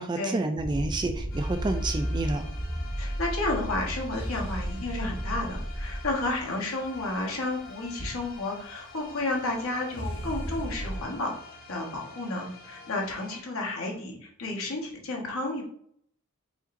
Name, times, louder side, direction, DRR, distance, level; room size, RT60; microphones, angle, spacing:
voice 1, 0.0-2.4, right 2 dB, 20° right, 7 dB, 0.3 m, -29 dB
sound 1, 0.6-8.3 9.9-11.0, equal, 25° left, 1.1 m, -34 dB
sound 2, 1.3-13.4, left 4 dB, 40° left, 1.1 m, -48 dB
voice 2, 3.0-11.3 11.7-15.6, left 2 dB, 75° left, -1 dB, 1.3 m, -32 dB
5.0 x 3.9 x 2.6 m, 0.65 s
head